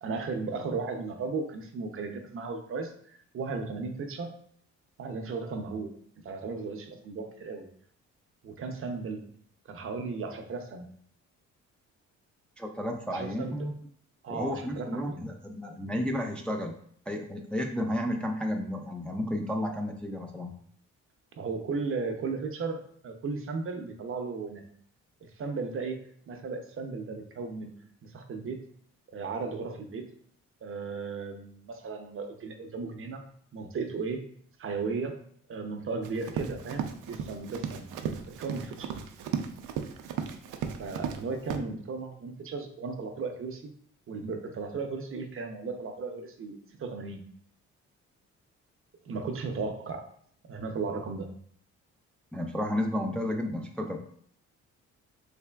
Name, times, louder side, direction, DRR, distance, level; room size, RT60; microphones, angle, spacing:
voice 1, 0.0-4.3 5.0-5.9 6.2-7.7 8.4-9.2 9.7-10.9 13.1-13.6 14.2-15.3 21.4-24.6 25.2-27.7 28.0-28.6 29.1-30.0 30.6-33.2 33.5-34.2 34.6-35.2 35.5-37.9 38.4-38.9 40.8-43.7 44.1-47.2 49.0-50.1 50.5-51.3, right 4 dB, 45° right, 5 dB, 0.6 m, -35 dB
voice 2, 12.6-13.7 14.3-16.7 17.1-20.5 52.3-54.0, left 1 dB, 5° left, 2 dB, 0.4 m, -32 dB
Run, 36.0-41.2 41.5-41.6, right 7 dB, 90° right, 0.5 m, -35 dB
3.6 x 3.3 x 2.2 m, 0.62 s
cardioid pair, 90°, 30 cm